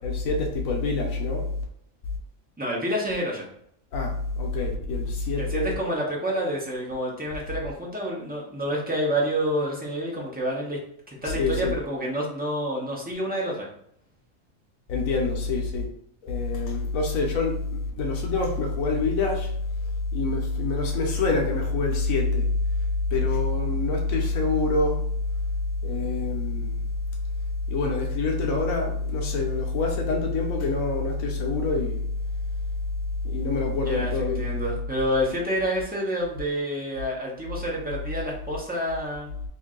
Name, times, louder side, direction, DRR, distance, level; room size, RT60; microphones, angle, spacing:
voice 1, 0.0-1.5 3.9-5.7 11.2-11.7 14.9-15.9 16.2-19.5 19.8-22.5 23.1-25.0 25.8-26.8 27.7-32.0 33.2-34.5, left 3 dB, 80° left, 1 dB, 1.1 m, -26 dB
voice 2, 2.6-3.5 5.4-10.8 11.1-13.7 33.8-39.3, equal, 10° right, -4 dB, 0.6 m, -28 dB
3.0 x 2.6 x 3.7 m, 0.70 s
omnidirectional pair, 1.4 m